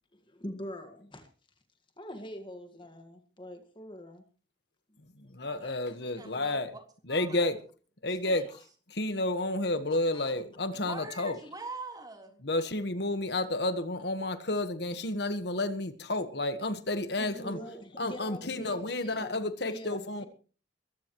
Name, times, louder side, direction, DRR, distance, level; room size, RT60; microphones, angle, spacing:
voice 1, 0.1-1.3 2.0-4.2 5.3-6.2 8.5-8.6 9.9-10.4 11.4-11.5 17.2-20.3, equal, 25° left, 1.8 m, -44 dB
voice 2, 5.3-6.7 7.1-7.5 8.0-8.4 8.9-11.4 12.4-17.6 18.0-20.2, left 2 dB, 60° left, 1.4 m, -31 dB
voice 3, 6.2-6.8 7.1-7.5 8.1-8.5 10.8-12.5, right 3 dB, 20° right, 3.7 m, -44 dB
22.5 x 16.0 x 3.1 m
head